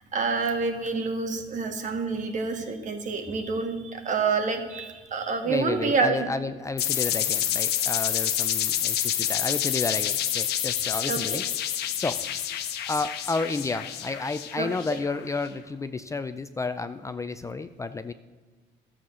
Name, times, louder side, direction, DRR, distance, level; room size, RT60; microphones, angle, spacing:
voice 1, 0.1-6.3 11.1-11.4 14.6-15.0, right 4 dB, 45° right, 6 dB, 1.7 m, -28 dB
voice 2, 5.4-12.2 12.9-18.1, left 3 dB, 20° left, 10 dB, 0.4 m, -31 dB
sound 1, 6.8-15.3, left 11 dB, 75° left, 1.0 m, -28 dB
12.5 x 7.4 x 6.2 m, 1.4 s
cardioid pair, 110°, 17 cm